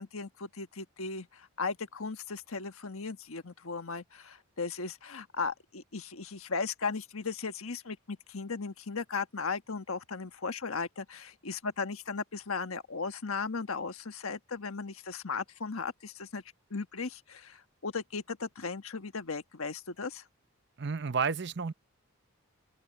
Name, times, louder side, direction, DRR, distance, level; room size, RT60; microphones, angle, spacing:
voice 1, 0.0-16.4 16.7-20.2, left 4 dB, 75° left, 1.3 m, -37 dB
voice 2, 20.8-21.7, right 5 dB, 50° right, 0.7 m, -31 dB
open air
head